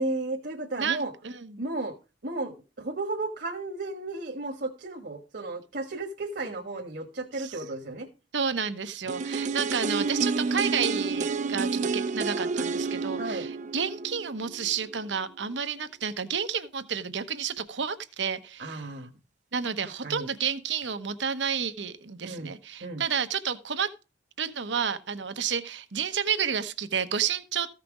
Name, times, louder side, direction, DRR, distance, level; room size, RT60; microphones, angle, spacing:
voice 1, 0.0-1.1 1.6-1.9 2.2-8.1 13.2-13.5 18.6-19.1 19.8-20.3 22.2-22.5 22.8-23.0, right 2 dB, 60° right, 1.5 m, -34 dB
voice 2, 0.8-1.6 7.4-7.5 8.3-18.8 19.5-23.9 24.4-27.7, right 7 dB, 80° right, 1.0 m, -30 dB
sound 1, 9.1-15.0 15.3-15.4, right 4 dB, 40° right, 0.5 m, -30 dB
14.5 x 5.9 x 4.9 m
head